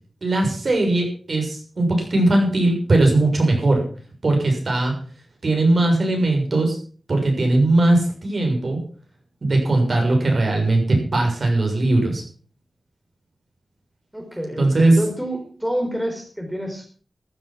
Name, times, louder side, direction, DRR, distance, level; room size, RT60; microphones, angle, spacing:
voice 1, 0.2-3.8 4.2-4.9 5.4-6.8 7.1-8.8 9.4-12.2 14.6-15.0, right 2 dB, 50° right, 2 dB, 6.7 m, -19 dB
voice 2, 14.1-16.9, equal, 5° right, 3 dB, 4.4 m, -28 dB
15.0 x 11.0 x 6.0 m, 0.42 s
wide cardioid pair, 85°, 0 cm